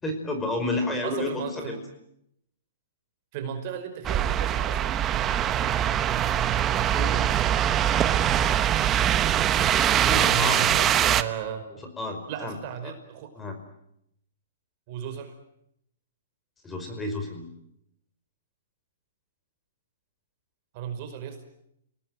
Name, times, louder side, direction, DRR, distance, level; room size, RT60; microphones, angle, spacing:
voice 1, 0.0-1.8 6.9-7.3 10.1-10.7 12.0-12.6 12.8-12.9 13.4-13.6 16.6-17.5, left 2 dB, 10° left, 5 dB, 5.0 m, -30 dB
voice 2, 1.0-1.8 3.3-4.9 10.3-11.6 12.3-13.3 14.9-15.3 20.7-21.4, right 8 dB, 40° right, 7 dB, 5.2 m, -35 dB
sound 1, 4.0-11.2, right 10 dB, 20° right, 1.1 m, -23 dB
28.0 x 19.0 x 9.4 m, 0.78 s
hypercardioid pair, 145°, 0 cm